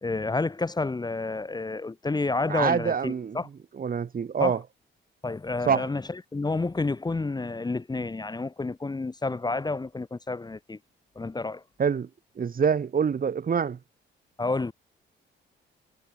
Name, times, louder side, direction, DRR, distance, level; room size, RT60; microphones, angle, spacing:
voice 1, 0.0-3.5 4.4-4.6 5.2-10.8 11.2-11.6 14.4-14.7, left 3 dB, 20° left, 2.0 m, -30 dB
voice 2, 2.5-3.4 3.8-4.6 5.7-5.9 11.8-12.1 12.4-13.8, right 6 dB, 45° right, 7.1 m, -25 dB
cardioid pair, 90°, 20 cm